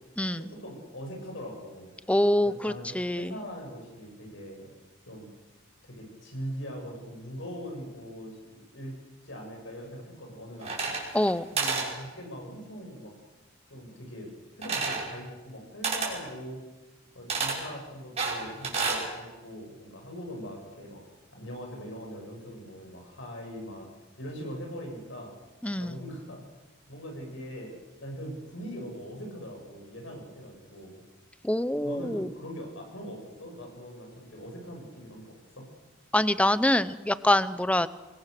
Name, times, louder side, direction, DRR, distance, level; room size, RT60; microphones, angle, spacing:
voice 1, 0.3-1.9 2.4-2.9 3.2-4.7 5.1-5.3 5.8-9.0 9.2-10.9 11.5-13.1 13.7-14.3 14.6-16.6 17.1-21.0 21.3-23.9 24.2-25.3 25.8-26.4 26.9-31.0 31.8-35.7, equal, 70° left, 1 dB, 7.1 m, -41 dB
voice 2, 2.1-3.3 11.1-11.4 25.6-26.0 31.4-32.3 36.1-37.9, left 1 dB, 5° left, 15 dB, 0.7 m, -25 dB
sound 1, 10.6-11.3 11.6-11.9 14.6-15.1 15.8-16.2 17.3-17.6 18.2-19.0, right 4 dB, 35° right, 6.2 m, -29 dB
25.5 x 21.5 x 6.7 m, 1.2 s
head